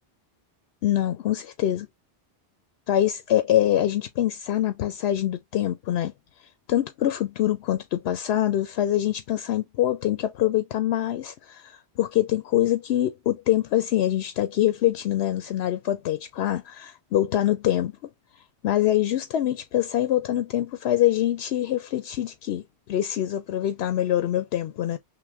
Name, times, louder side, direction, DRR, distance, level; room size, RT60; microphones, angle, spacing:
voice 1, 0.8-1.9 2.9-6.1 6.7-17.9 18.6-25.0, left 12 dB, 80° left, 0.8 m, -24 dB
5.9 x 2.2 x 3.2 m
omnidirectional pair, 1.1 m